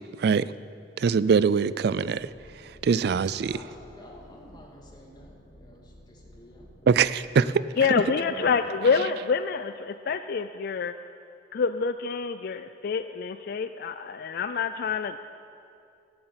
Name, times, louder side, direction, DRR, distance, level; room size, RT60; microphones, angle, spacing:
voice 1, 0.2-0.5 1.0-2.3 2.8-3.5 6.9-7.6, right 6 dB, 65° right, 0.4 m, -22 dB
sound 1, 2.0-7.1 7.8-8.5, left 1 dB, 80° left, 2.8 m, -53 dB
voice 2, 3.4-7.0 7.8-9.1, equal, 25° left, 2.1 m, -47 dB
voice 3, 7.8-10.9 11.5-15.2, left 5 dB, 60° left, 0.4 m, -27 dB
14.5 x 7.9 x 7.9 m
head